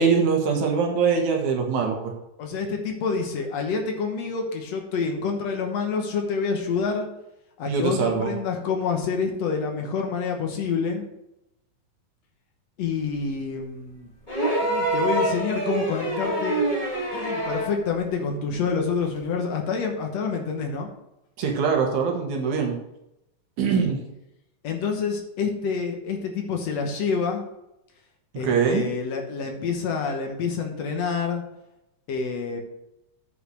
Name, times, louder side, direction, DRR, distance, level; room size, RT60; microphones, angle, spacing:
voice 1, 0.0-2.1 7.7-8.3 21.4-22.8 23.6-24.0 28.4-28.8, right 5 dB, 70° right, 2 dB, 2.8 m, -23 dB
voice 2, 2.4-7.1 7.6-11.1 12.8-14.1 14.6-16.6 17.1-20.9 24.6-27.4 28.4-31.4 32.1-32.6, left 5 dB, 65° left, 3 dB, 2.2 m, -27 dB
sound 1, 14.3-17.8 19.2-19.3, right 1 dB, 20° left, 1.6 m, -25 dB
8.2 x 5.8 x 6.4 m, 0.86 s
omnidirectional pair, 3.5 m